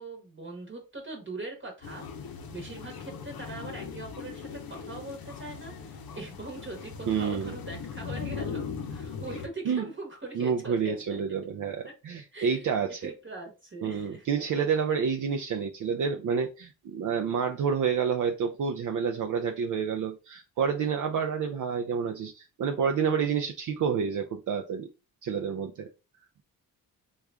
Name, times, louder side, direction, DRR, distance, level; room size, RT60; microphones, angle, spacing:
voice 1, 0.0-8.6 8.9-11.2 11.8-11.9 12.3-12.8 13.0-14.2, right 2 dB, 30° right, 1.1 m, -41 dB
sound 1, 1.8-9.5, left 6 dB, 65° left, 0.7 m, -39 dB
voice 2, 7.1-7.6 9.7-9.8 10.3-13.1 13.8-24.9 25.2-25.9, right 6 dB, 55° right, 0.5 m, -29 dB
3.1 x 2.4 x 3.5 m
cardioid pair, 80°, 38 cm